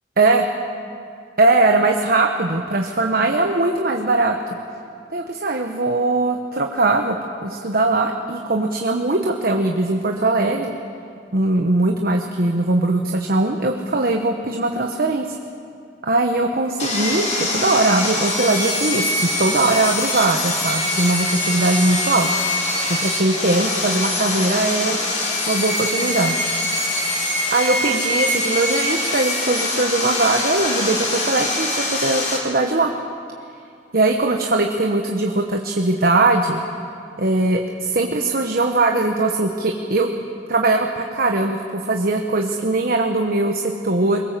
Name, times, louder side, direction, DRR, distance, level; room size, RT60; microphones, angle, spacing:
voice 1, 1.4-4.4 5.1-7.2 7.4-10.7 11.3-15.3 16.0-22.3 22.9-25.0 25.5-26.4 27.5-32.9 33.9-36.6 37.2-40.1 40.5-44.2, right 2 dB, 55° right, 3 dB, 1.2 m, -20 dB
Sawing, 16.8-32.4, left 2 dB, 40° left, 4.4 m, -23 dB
23.0 x 21.0 x 7.5 m, 2.4 s
head